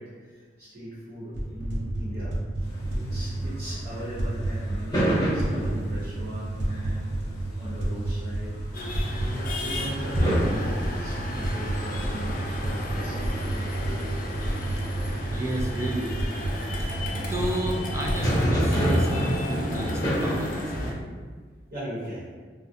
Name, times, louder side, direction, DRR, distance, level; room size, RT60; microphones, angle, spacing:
voice 1, 0.0-7.1 7.5-8.5 9.0-13.3 21.7-22.3, equal, 60° right, -9 dB, 1.0 m, -39 dB
sound 1, 1.3-18.2, right 1 dB, 80° right, 0.7 m, -31 dB
sound 2, 2.6-20.7, equal, 20° left, 0.7 m, -30 dB
sound 3, 8.7-20.9, left 2 dB, 50° left, 0.5 m, -35 dB
voice 2, 15.3-16.1 16.8-21.4, right 1 dB, 15° right, -1 dB, 0.4 m, -32 dB
3.4 x 2.1 x 2.7 m, 1.5 s
head